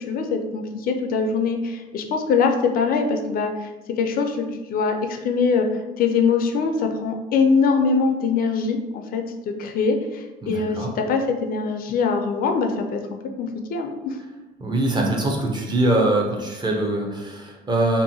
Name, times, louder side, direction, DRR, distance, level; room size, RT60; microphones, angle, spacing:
voice 1, 0.1-3.7 4.0-5.7 6.0-13.0 13.4-14.2, left 5 dB, 60° left, 5 dB, 0.4 m, -23 dB
voice 2, 10.4-10.9 14.6-18.0, right 1 dB, 25° right, 0 dB, 0.6 m, -23 dB
2.7 x 2.5 x 2.7 m, 1.1 s
cardioid pair, 110°, 17 cm